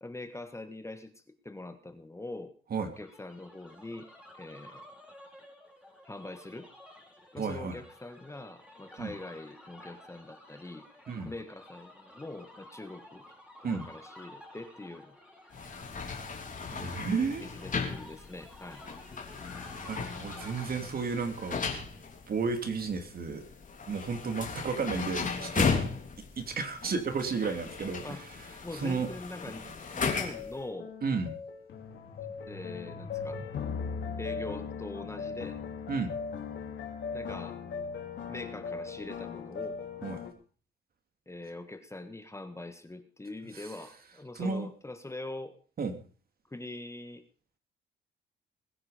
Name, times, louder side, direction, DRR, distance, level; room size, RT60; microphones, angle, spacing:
voice 1, 0.0-2.5 3.0-4.1 4.3-4.8 6.0-6.7 7.3-10.9 11.2-13.2 13.7-15.2 17.4-18.8 28.0-28.2 28.6-29.7 29.9-30.9 32.5-33.4 34.2-35.6 37.1-37.6 38.3-39.8 41.3-45.5 46.5-47.2, left 2 dB, 15° left, 9 dB, 1.6 m, -43 dB
sound 1, 2.9-20.6, left 1 dB, 5° right, 5.1 m, -53 dB
voice 2, 7.4-7.8 9.0-9.1 11.1-11.3 13.6-13.9 16.7-17.4 19.8-21.6 22.3-23.4 23.9-25.7 26.4-28.3 28.7-29.1 31.0-31.3 35.9-36.1 40.0-40.2 43.5-43.7 44.3-44.7 45.8-46.0, right 5 dB, 50° right, 6 dB, 2.9 m, -32 dB
sound 2, 15.5-30.6, left 5 dB, 40° left, 3.3 m, -36 dB
sound 3, 30.1-40.3, left 5 dB, 65° left, 3.1 m, -39 dB
21.0 x 9.8 x 5.2 m, 0.41 s
cardioid pair, 90°, 20 cm